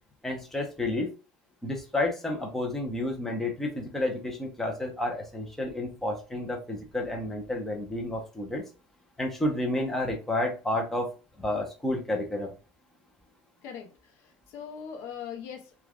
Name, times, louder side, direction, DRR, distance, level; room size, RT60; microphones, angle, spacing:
voice 1, 0.2-1.1 1.6-8.6 9.2-11.1 11.4-12.5, left 1 dB, 5° left, 0.7 m, -30 dB
voice 2, 13.6-15.7, left 7 dB, 60° left, 0.7 m, -41 dB
3.1 x 2.3 x 2.4 m
cardioid pair, 135°, 5 cm